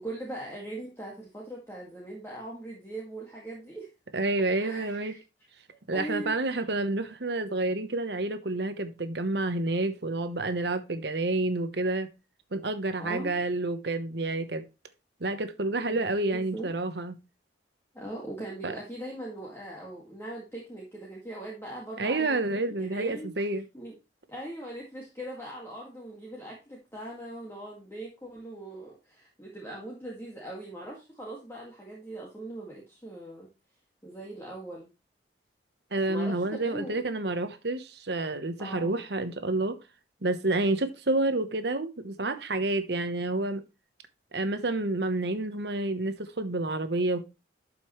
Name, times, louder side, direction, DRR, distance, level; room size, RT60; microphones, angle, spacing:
voice 1, 0.0-3.9 4.6-5.2 5.9-6.4 13.0-13.3 15.9-16.0 16.3-16.7 17.9-23.3 23.7-23.9 24.3-33.5 34.0-34.9 36.1-37.0 38.6-39.0, right 1 dB, 15° left, 2.0 m, -40 dB
voice 2, 4.1-5.1 5.9-12.1 12.5-14.6 15.2-17.2 18.6-18.7 22.0-23.7 35.9-39.8 40.2-43.6 44.3-47.2, right 2 dB, 65° right, 1.1 m, -29 dB
11.5 x 5.5 x 3.2 m
head